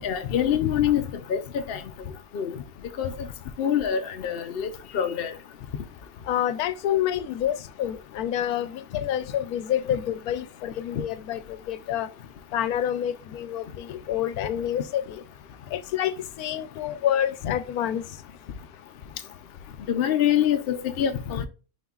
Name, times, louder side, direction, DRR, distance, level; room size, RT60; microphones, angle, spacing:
voice 1, 0.0-1.0 1.3-1.8 2.3-2.5 3.0-3.1 3.6-5.3 17.4-17.5 19.9-21.5, left 9 dB, 65° left, 0.6 m, -25 dB
voice 2, 6.3-11.4 11.7-12.1 12.5-15.2 15.7-18.0, left 10 dB, 90° left, 1.1 m, -28 dB
9.4 x 4.3 x 2.4 m
omnidirectional pair, 1.5 m